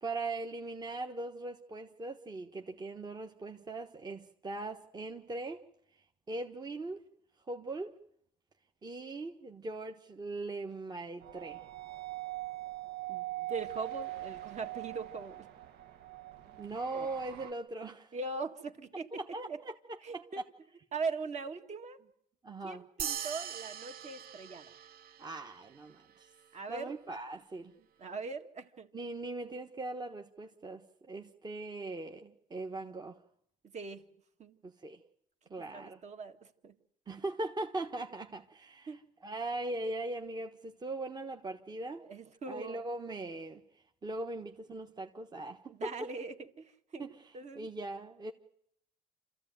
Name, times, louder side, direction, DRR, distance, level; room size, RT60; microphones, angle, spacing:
voice 1, 0.0-5.6 6.3-7.0 7.5-8.0 8.8-11.6 16.6-18.1 19.1-20.4 22.4-22.8 25.2-26.3 26.7-27.7 28.9-33.2 34.6-35.0 35.5-36.0 37.1-42.1 42.5-43.6 44.0-45.9 47.0-47.2 47.5-48.3, right 2 dB, 25° right, 1.2 m, -40 dB
sound 1, 11.2-17.5, right 17 dB, 85° right, 1.4 m, -42 dB
voice 2, 13.1-15.5 16.9-17.1 18.1-19.2 19.5-19.6 20.0-20.4 20.9-22.0 22.6-24.7 26.5-26.9 28.0-28.9 33.7-34.1 34.4-34.6 35.7-36.7 38.9-39.0 42.0-42.8 45.7-47.1 47.3-47.7, right 4 dB, 45° right, 2.0 m, -41 dB
sound 2, 23.0-25.7, right 9 dB, 65° right, 0.9 m, -41 dB
27.0 x 14.5 x 9.3 m
cardioid pair, 110°, 17 cm